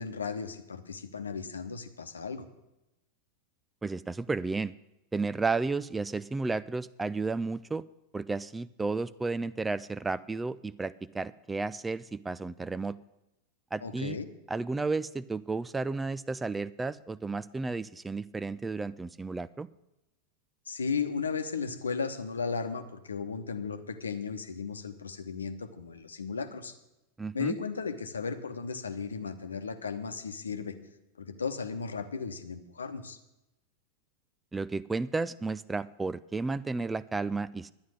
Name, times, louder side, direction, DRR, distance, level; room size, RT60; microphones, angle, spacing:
voice 1, 0.0-2.4 13.8-14.3 20.7-26.7 27.3-30.7 31.2-33.2, left 5 dB, 75° left, 9 dB, 1.0 m, -35 dB
voice 2, 3.8-4.7 5.1-7.8 8.1-13.0 13.7-14.2 14.5-19.7 27.2-27.6 34.5-37.7, right 3 dB, 10° right, 18 dB, 0.3 m, -32 dB
11.0 x 9.8 x 6.4 m, 0.93 s
figure-of-eight pair, 90°, 0 cm